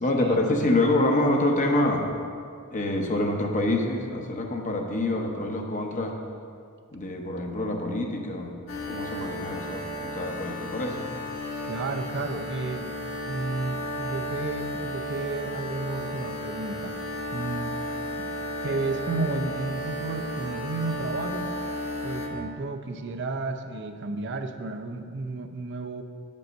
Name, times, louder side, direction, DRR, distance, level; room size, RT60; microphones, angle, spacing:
voice 1, 0.0-2.1 2.7-6.2 6.9-8.5 8.9-11.1, left 1 dB, 35° left, 2 dB, 0.8 m, -26 dB
sound 1, 8.7-22.3, equal, 65° left, 1.6 m, -34 dB
voice 2, 11.6-12.9 13.2-16.9 17.3-17.7 18.2-18.4 18.6-21.5 22.0-26.0, right 3 dB, 55° right, 7 dB, 0.6 m, -32 dB
8.6 x 5.4 x 6.5 m, 2.3 s
head